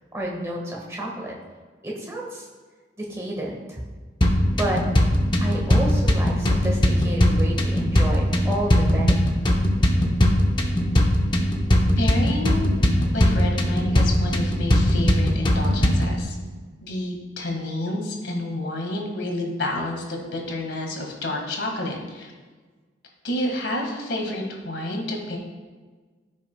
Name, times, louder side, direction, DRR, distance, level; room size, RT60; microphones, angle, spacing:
voice 1, 0.1-1.3 1.8-2.5 3.0-3.8 4.5-4.8 5.4-9.1, right 1 dB, 15° right, -2 dB, 1.4 m, -30 dB
sound 1, 4.2-16.2, equal, 25° left, 0.7 m, -20 dB
voice 2, 12.0-12.7 13.1-16.4 16.8-22.3 23.2-25.4, left 1 dB, 75° left, 1 dB, 1.7 m, -29 dB
15.0 x 6.1 x 2.2 m, 1.4 s
head